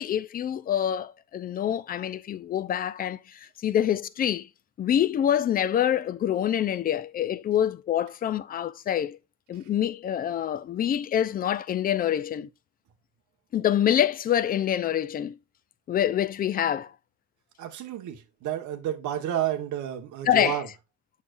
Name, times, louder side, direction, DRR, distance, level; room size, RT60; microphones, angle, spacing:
voice 1, 0.0-4.5 4.8-9.2 9.5-12.5 13.5-15.4 15.9-16.9 20.2-20.6, left 10 dB, 25° left, 0.4 m, -26 dB
voice 2, 17.6-20.7, right 11 dB, 60° right, 1.3 m, -31 dB
7.1 x 6.4 x 2.5 m
cardioid pair, 155°, 33 cm